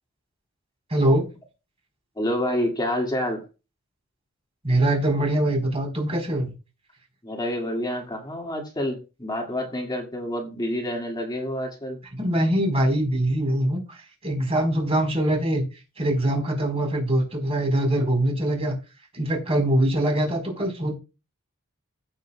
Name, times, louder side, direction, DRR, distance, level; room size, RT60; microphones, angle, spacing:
voice 1, 0.9-1.3 4.6-6.5 12.1-14.0 14.2-15.6 16.0-18.7 19.1-20.9, right 1 dB, 30° right, 4.2 m, -23 dB
voice 2, 2.2-3.4 7.2-12.0, left 1 dB, 20° left, 2.2 m, -28 dB
15.5 x 7.9 x 2.3 m
head